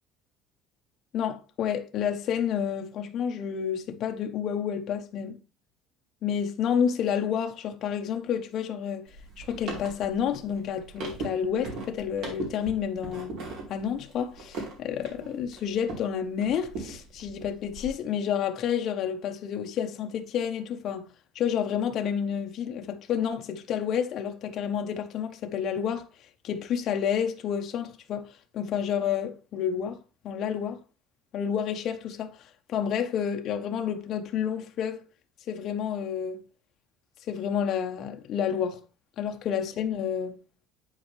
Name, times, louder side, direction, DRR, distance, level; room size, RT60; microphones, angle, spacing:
voice 1, 1.1-5.4 6.2-9.1 9.4-13.3 13.7-21.1 21.3-26.1 26.4-28.3 28.5-30.0 30.2-30.8 31.3-35.0 35.5-36.4 37.3-38.8 39.2-40.4, left 8 dB, 40° left, 0.8 m, -30 dB
sound 1, 9.1-16.1 16.4-17.9, right 3 dB, 50° right, 2.8 m, -39 dB
10.0 x 4.4 x 3.2 m
cardioid pair, 175°, 0 cm